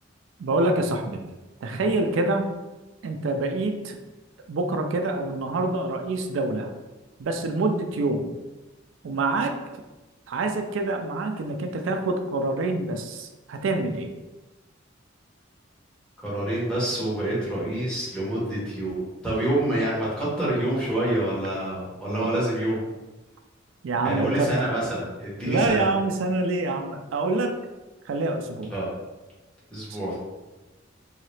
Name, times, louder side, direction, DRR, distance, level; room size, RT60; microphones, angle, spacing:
voice 1, 0.4-1.2 1.6-2.5 3.0-4.0 4.5-6.7 7.2-8.4 9.0-9.6 10.3-14.1 22.2-22.3 23.8-24.5 25.5-27.5 28.1-28.7 29.9-30.0, right 2 dB, 80° right, 5 dB, 0.4 m, -26 dB
voice 2, 16.2-22.8 24.0-25.8 28.7-28.9 29.7-30.2, right 1 dB, 5° left, -7 dB, 1.1 m, -27 dB
3.1 x 2.8 x 3.1 m, 1.1 s
head